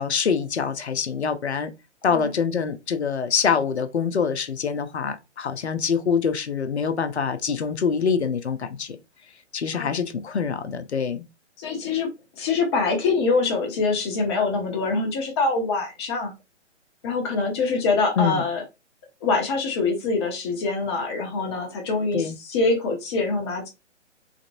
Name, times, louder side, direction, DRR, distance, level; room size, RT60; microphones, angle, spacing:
voice 1, 0.0-1.7 2.0-9.0 9.5-11.2 18.2-18.4 22.1-22.3, left 6 dB, 65° left, 0.7 m, -25 dB
voice 2, 11.6-16.3 17.0-18.6 19.2-23.7, left 3 dB, 20° left, 0.9 m, -24 dB
4.0 x 3.2 x 2.6 m
figure-of-eight pair, 135°, 36 cm